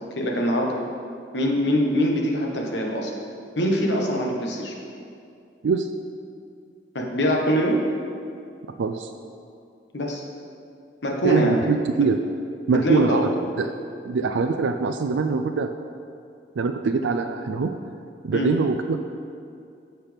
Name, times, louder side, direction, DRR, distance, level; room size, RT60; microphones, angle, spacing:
voice 1, 0.1-0.8 1.3-3.1 3.6-4.7 6.9-7.8 9.9-10.2 11.0-11.7 12.7-13.2 18.3-18.5, equal, 70° left, 0 dB, 1.3 m, -23 dB
voice 2, 8.8-9.1 11.2-12.2 12.7-13.2 13.6-13.7 14.0-15.7 16.6-17.7 18.2-19.0, right 4 dB, 90° right, 6 dB, 0.4 m, -23 dB
14.5 x 5.8 x 3.5 m, 2.4 s
head